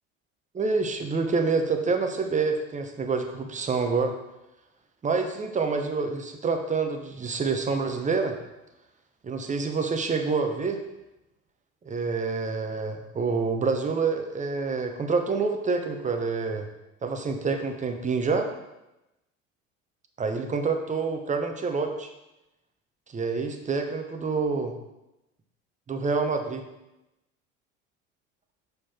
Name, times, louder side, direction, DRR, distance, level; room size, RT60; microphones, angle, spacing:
voice 1, 0.5-4.1 5.0-8.4 9.2-10.8 11.8-16.7 17.0-18.5 20.2-22.1 23.1-24.7 25.9-26.7, right 4 dB, 20° right, 5 dB, 0.8 m, -27 dB
6.3 x 4.9 x 3.6 m, 0.94 s
figure-of-eight pair, 70°, 41 cm